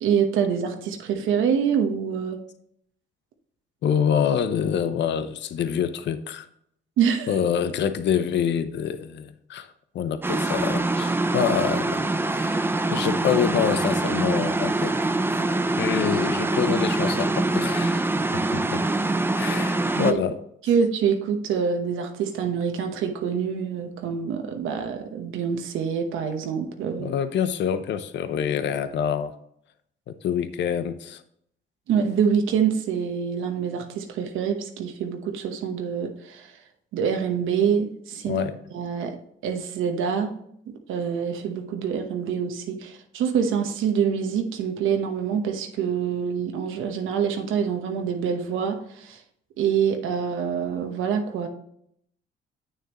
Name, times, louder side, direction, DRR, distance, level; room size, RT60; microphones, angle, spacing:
voice 1, 0.0-2.4 7.0-7.4 19.4-19.5 19.9-20.2 20.6-27.1 31.9-36.6 36.9-38.5 38.7-39.2 39.4-40.3 40.7-49.2 49.6-51.5, right 7 dB, 85° right, 5 dB, 1.1 m, -26 dB
voice 2, 3.8-6.5 7.3-9.7 9.9-12.6 12.9-15.0 15.8-18.1 18.5-18.8 19.3-20.4 27.0-29.3 30.1-31.2 38.3-38.5, left 8 dB, 65° left, 11 dB, 0.7 m, -26 dB
sound 1, 10.2-20.1, right 2 dB, 10° right, 0.5 m, -24 dB
9.2 x 6.5 x 3.0 m, 0.71 s
cardioid pair, 90°, 20 cm